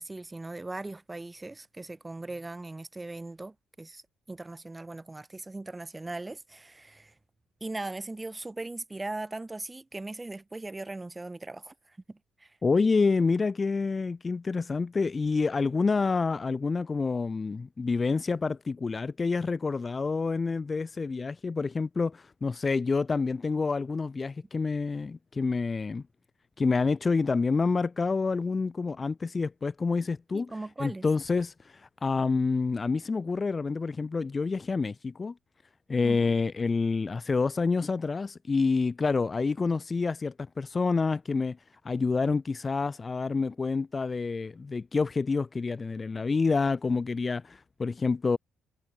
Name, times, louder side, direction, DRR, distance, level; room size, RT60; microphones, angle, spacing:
voice 1, 0.0-7.1 7.6-12.6 30.3-31.0 36.0-36.3, right 2 dB, 15° right, 2.5 m, -39 dB
voice 2, 12.6-26.0 26.6-30.5 30.8-35.3 35.9-41.6 41.8-48.4, left 4 dB, 30° left, 1.1 m, -28 dB
cardioid pair, 110°, 0 cm